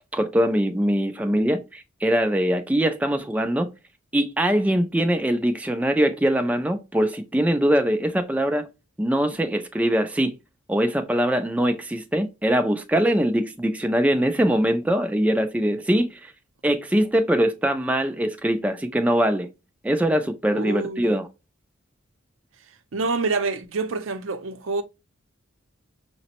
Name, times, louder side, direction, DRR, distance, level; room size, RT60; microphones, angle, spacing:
voice 1, 0.1-3.7 4.1-8.7 9.0-10.4 10.7-16.3 16.6-19.5 19.8-21.3, equal, 5° right, 0.3 m, -22 dB
voice 2, 20.5-21.1 22.9-24.8, right 3 dB, 80° right, 0.5 m, -27 dB
5.7 x 2.0 x 2.8 m
head